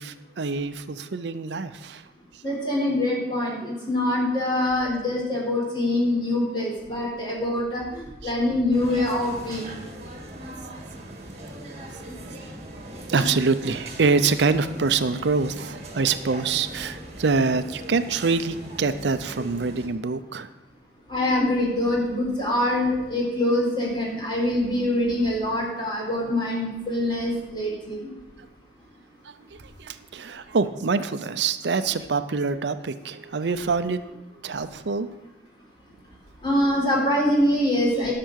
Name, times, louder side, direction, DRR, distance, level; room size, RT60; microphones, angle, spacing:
voice 1, 0.0-2.0 8.2-8.3 10.0-10.3 11.7-12.0 12.7-12.8 13.1-20.5 29.2-34.0 34.4-35.1, right 4 dB, 75° right, 11 dB, 0.6 m, -25 dB
voice 2, 2.4-9.8 21.1-28.0 36.4-38.1, left 1 dB, 25° left, -3 dB, 3.9 m, -24 dB
sound 1, 8.7-19.9, right 1 dB, 35° right, 1.9 m, -40 dB
11.5 x 6.6 x 6.4 m, 1.0 s
head